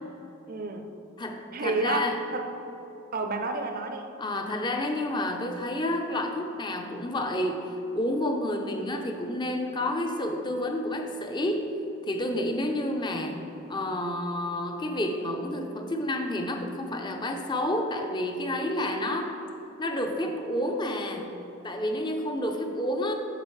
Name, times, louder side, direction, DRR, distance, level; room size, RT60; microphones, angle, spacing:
voice 1, 0.5-0.9 1.5-2.5 3.1-4.1, right 3 dB, 40° right, 5 dB, 0.6 m, -30 dB
voice 2, 1.2-2.2 4.2-11.7 12.0-13.4 13.7-19.3 19.8-21.3 21.6-23.2, left 1 dB, 20° left, 4 dB, 0.6 m, -30 dB
9.8 x 7.1 x 3.2 m, 2.9 s
head